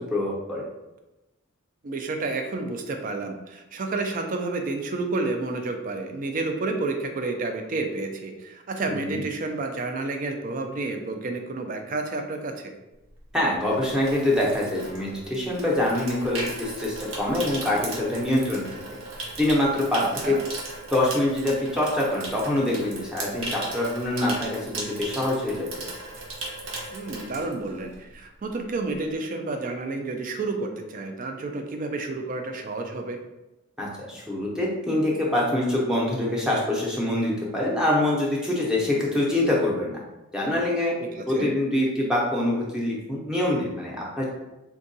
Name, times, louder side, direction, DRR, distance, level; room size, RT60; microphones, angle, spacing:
voice 1, 0.1-0.7 8.9-9.2 13.3-18.7 19.4-20.3 20.9-25.7 33.8-40.0 40.3-40.9 41.3-44.3, left 1 dB, 5° right, -4 dB, 0.6 m, -25 dB
voice 2, 1.8-12.8 20.0-20.4 26.9-33.2 41.0-41.5, right 3 dB, 40° right, 5 dB, 0.3 m, -30 dB
Water tap faucet / Sink (filling or washing), 13.1-28.1 28.4-28.7, right 2 dB, 80° right, 0.7 m, -37 dB
3.5 x 2.2 x 2.6 m, 0.98 s
head